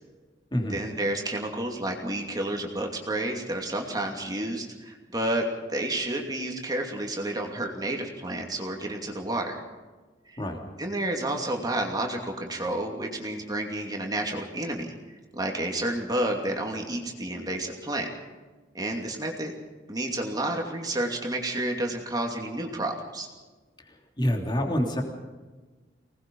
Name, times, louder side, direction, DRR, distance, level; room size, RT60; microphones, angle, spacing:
voice 1, 0.7-9.6 10.3-10.4 10.8-14.9 15.3-18.1 18.7-19.5 19.9-23.3, right 1 dB, 20° right, 1 dB, 2.7 m, -30 dB
voice 2, 23.9-25.0, equal, 25° left, 2 dB, 3.2 m, -27 dB
25.5 x 19.5 x 5.5 m, 1.3 s
head